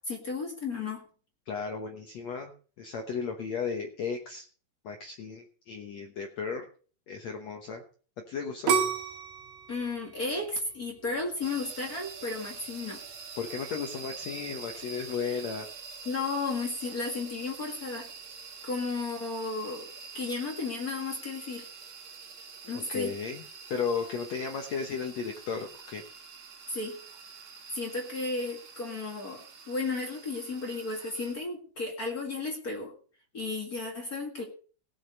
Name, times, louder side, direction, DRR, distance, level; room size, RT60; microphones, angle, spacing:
voice 1, 0.1-1.0 9.7-13.0 16.0-18.1 18.6-19.9 20.1-21.7 22.6-23.1 26.7-27.0 27.7-32.9 33.3-34.4, left 3 dB, 45° left, 1 dB, 1.1 m, -34 dB
voice 2, 1.5-2.5 2.8-4.4 4.8-6.6 7.1-7.8 8.3-8.7 13.4-15.7 22.9-23.4 23.7-26.0, left 5 dB, 80° left, 4 dB, 1.5 m, -34 dB
sound 1, 8.7-11.6 12.1-12.6, right 6 dB, 60° right, 2.7 m, -30 dB
sound 2, 11.4-31.3, right 5 dB, 80° right, 1.2 m, -46 dB
17.5 x 7.3 x 5.3 m, 0.40 s
omnidirectional pair, 4.9 m